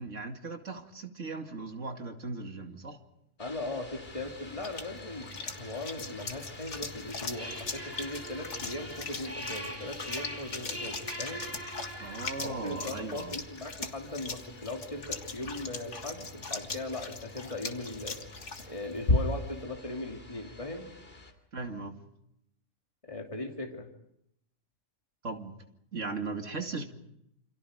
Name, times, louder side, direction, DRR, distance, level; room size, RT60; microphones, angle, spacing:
voice 1, 0.0-3.0 12.0-13.4 21.5-21.9 25.2-25.6 25.9-26.8, right 3 dB, 70° right, 4 dB, 2.7 m, -38 dB
sound 1, 3.4-21.3, left 2 dB, 45° left, 3.3 m, -50 dB
voice 2, 3.4-5.3 5.6-11.4 12.4-18.2 18.6-20.9 23.0-23.9, left 2 dB, 25° left, 1 dB, 2.9 m, -39 dB
sound 2, 4.0-19.6, left 2 dB, 65° left, 2.2 m, -38 dB
sound 3, 7.3-12.5, equal, 10° right, 6.8 m, -42 dB
28.5 x 27.0 x 5.1 m, 0.79 s
omnidirectional pair, 1.3 m